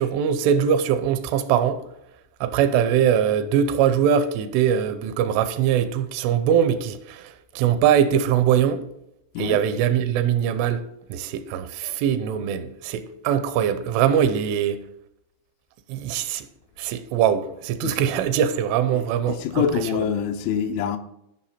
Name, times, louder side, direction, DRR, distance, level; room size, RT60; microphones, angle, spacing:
voice 1, 0.0-1.8 2.4-8.8 9.4-10.8 11.1-14.8 15.9-16.5 16.8-20.1, right 9 dB, 85° right, 3.2 m, -22 dB
voice 2, 18.9-21.0, left 8 dB, 80° left, 3.0 m, -26 dB
13.5 x 5.9 x 4.2 m
omnidirectional pair, 5.6 m